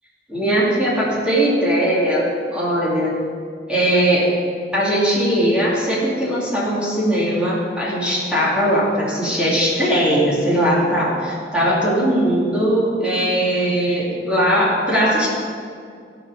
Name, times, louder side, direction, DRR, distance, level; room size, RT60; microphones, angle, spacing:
voice 1, 0.3-3.2 3.7-4.3 4.7-15.3, equal, 5° right, -7 dB, 2.5 m, -19 dB
16.0 x 5.4 x 6.6 m, 2.3 s
head